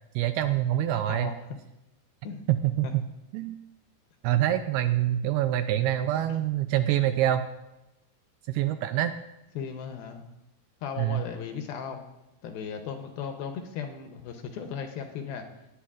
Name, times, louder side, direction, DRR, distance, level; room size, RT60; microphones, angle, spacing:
voice 1, 0.2-1.3 2.5-3.0 3.3-3.6 4.2-7.5 8.5-9.1 11.0-11.2, right 12 dB, 85° right, 9 dB, 2.3 m, -25 dB
voice 2, 1.1-1.4 2.2-2.5 2.8-2.9 6.3-6.4 9.6-10.2 10.8-12.0 12.4-15.5, left 7 dB, 75° left, 5 dB, 2.4 m, -36 dB
18.0 x 9.9 x 2.4 m, 0.93 s
omnidirectional pair, 4.8 m